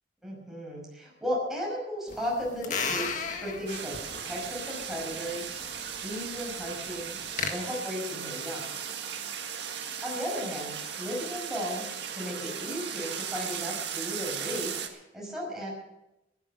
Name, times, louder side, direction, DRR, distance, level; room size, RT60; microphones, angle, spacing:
voice 1, 0.2-8.6 10.0-11.8 12.1-15.7, equal, ahead, -4 dB, 5.5 m, -35 dB
sound 1, 2.1-7.5, left 5 dB, 45° left, 1.6 m, -36 dB
sound 2, 3.7-14.9, right 8 dB, 65° right, 1.7 m, -37 dB
16.0 x 11.0 x 6.6 m, 0.93 s
head